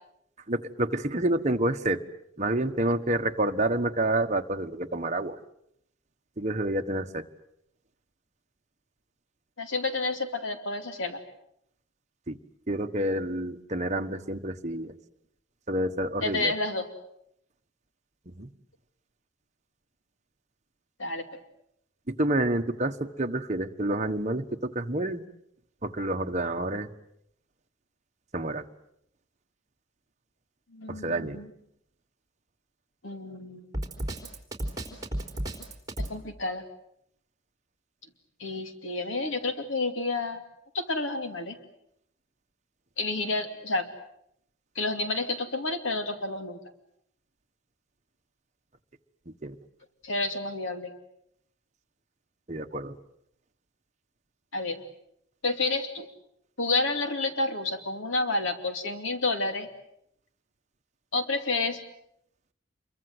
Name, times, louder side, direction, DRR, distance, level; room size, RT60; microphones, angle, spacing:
voice 1, 0.5-2.0 2.4-5.4 6.4-7.2 12.3-12.4 12.7-14.9 15.7-16.5 18.4-18.5 22.1-25.2 25.8-26.9 28.3-28.6 30.9-31.4 49.3-49.6 52.5-53.0, right 1 dB, 35° right, 5 dB, 1.3 m, -28 dB
voice 2, 9.6-11.2 16.2-16.9 21.0-21.2 30.7-31.5 33.0-33.7 36.1-36.6 38.4-40.4 40.7-41.6 43.0-43.8 44.8-46.6 50.0-50.9 54.5-54.8 55.4-56.1 56.6-59.7 61.1-61.8, left 3 dB, 75° left, 7 dB, 2.7 m, -30 dB
Drum kit, 33.7-36.2, right 1 dB, 20° right, 3.9 m, -32 dB
27.5 x 23.5 x 7.9 m, 0.74 s
head